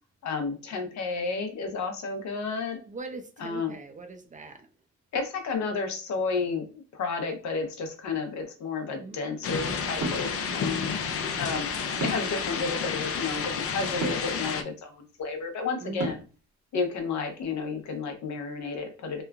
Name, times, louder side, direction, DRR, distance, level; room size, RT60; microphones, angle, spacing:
voice 1, 0.2-2.8 3.4-3.7 5.1-10.9 11.4-11.7 12.0-14.9 15.2-16.2 16.7-19.2, left 4 dB, 70° left, 5 dB, 0.8 m, -31 dB
voice 2, 2.8-4.7 8.9-9.2 10.3-10.7 15.8-16.2, right 3 dB, 25° right, 7 dB, 0.4 m, -42 dB
sound 1, 9.4-14.6, left 6 dB, 50° left, 0.5 m, -31 dB
sound 2, 10.0-10.3 12.0-12.4 14.0-14.3 16.0-16.4, right 3 dB, 70° right, 1.2 m, -31 dB
3.0 x 2.2 x 2.3 m, 0.35 s
cardioid pair, 90°, 30 cm